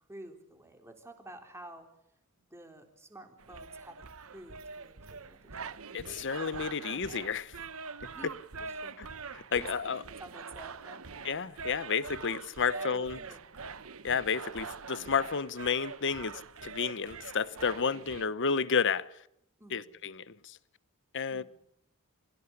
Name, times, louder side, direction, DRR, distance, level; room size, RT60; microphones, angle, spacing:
voice 1, 0.1-1.9 2.4-5.8 8.1-8.3 8.8-8.9 9.5-9.9 10.2-11.1 12.7-13.4 19.6-19.9 21.3-21.4, right 1 dB, 10° right, 4.0 m, -50 dB
sound 1, 3.4-18.3, right 4 dB, 65° right, 1.2 m, -44 dB
voice 2, 5.9-7.6 9.0-9.1 9.3-10.0 11.2-13.2 14.0-19.1 19.7-20.6 21.1-21.4, left 6 dB, 55° left, 0.9 m, -31 dB
26.0 x 16.5 x 9.7 m
head